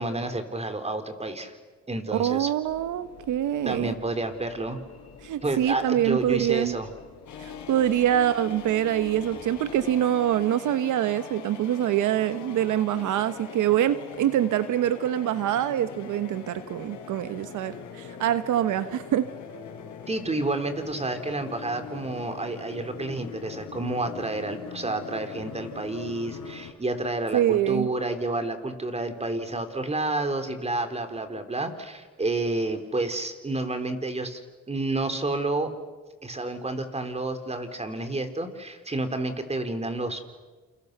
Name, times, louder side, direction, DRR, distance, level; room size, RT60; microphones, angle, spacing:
voice 1, 0.0-1.5 1.9-2.5 3.6-4.8 5.4-6.9 20.1-34.4 34.7-35.7 36.2-40.3, right 2 dB, 20° right, 8 dB, 3.8 m, -30 dB
voice 2, 2.1-3.9 5.2-6.7 7.4-19.3 27.3-27.9, right 11 dB, 80° right, 12 dB, 1.1 m, -25 dB
Train / Engine / Alarm, 2.6-10.9, left 6 dB, 55° left, 5.9 m, -50 dB
sound 1, 7.3-26.7, left 6 dB, 75° left, 4.5 m, -41 dB
29.0 x 28.5 x 6.8 m, 1.3 s
cardioid pair, 90°, 30 cm